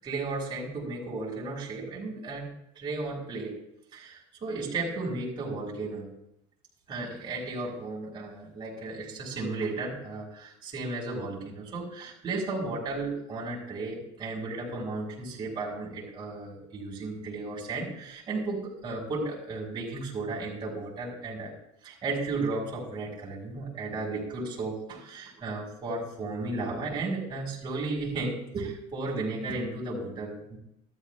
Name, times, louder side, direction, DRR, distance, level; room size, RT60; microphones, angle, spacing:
voice 1, 0.0-2.5 2.7-3.6 3.9-6.1 6.9-21.5 21.8-30.6, right 3 dB, 30° right, -4 dB, 6.2 m, -34 dB
15.0 x 13.5 x 3.6 m, 0.79 s
cardioid pair, 140°, 15 cm